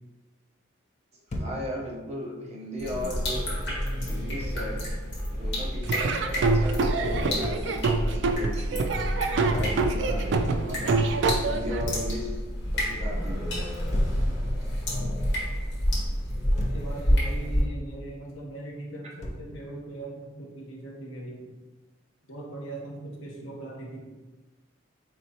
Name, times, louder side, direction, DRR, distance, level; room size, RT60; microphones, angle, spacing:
Thump thud, 1.3-1.6 4.4-4.6 7.1-7.4 9.5-9.9 11.8-12.1 13.9-14.2 16.3-16.9 19.2-19.5, left 1 dB, 35° left, 0.4 m, -33 dB
voice 1, 1.3-3.5 4.1-4.9 5.3-9.1 9.5-11.1 11.4-12.4 12.7-13.5, equal, 35° right, -3 dB, 0.8 m, -36 dB
sound 1, 2.8-17.6, equal, 60° left, 1.3 m, -29 dB
Laughter / Drum, 5.8-11.8, right 3 dB, 65° right, 0.3 m, -26 dB
voice 2, 16.7-21.5 22.3-24.1, right 2 dB, 90° left, -1 dB, 0.9 m, -40 dB
4.3 x 3.2 x 2.8 m, 1.2 s
head